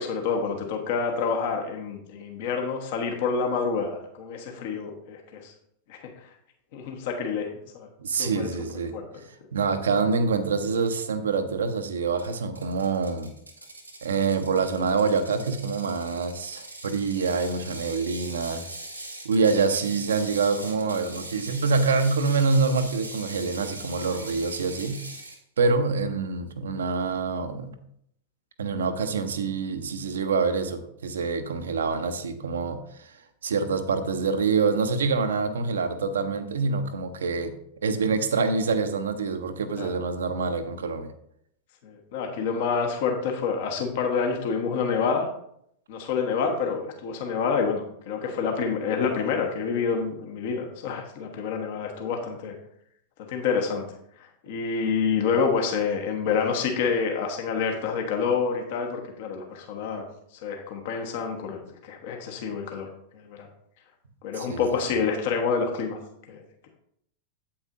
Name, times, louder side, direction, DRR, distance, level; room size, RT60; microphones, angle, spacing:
voice 1, 0.0-5.5 5.9-6.1 6.7-7.9 8.2-8.5 8.9-9.0 39.8-39.9 41.8-45.3 45.9-52.6 53.3-54.0 54.4-60.1 60.4-63.5 64.2-66.0 66.3-66.7, left 5 dB, 50° left, 3 dB, 1.2 m, -28 dB
voice 2, 8.0-9.0 9.5-13.3 14.0-18.6 19.2-25.0 25.6-27.8 28.6-33.2 33.4-37.5 37.8-41.1 64.4-64.6, right 4 dB, 65° right, 9 dB, 0.7 m, -26 dB
Ratchet pawl, 12.2-25.4, right 2 dB, 85° right, 1.0 m, -41 dB
8.5 x 8.1 x 2.6 m, 0.72 s
figure-of-eight pair, 90°, 0 cm